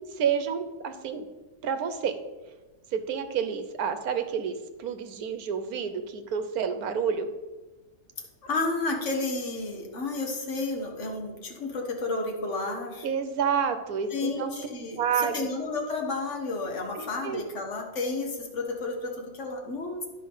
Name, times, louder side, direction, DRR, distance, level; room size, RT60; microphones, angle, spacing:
voice 1, 0.2-1.2 1.6-2.1 2.9-7.3 13.0-14.5 15.0-15.5 17.0-17.4, right 7 dB, 75° right, 9 dB, 1.3 m, -29 dB
voice 2, 8.4-13.1 14.1-20.1, left 3 dB, 50° left, 2 dB, 1.8 m, -31 dB
10.5 x 5.2 x 5.6 m, 1.2 s
omnidirectional pair, 1.6 m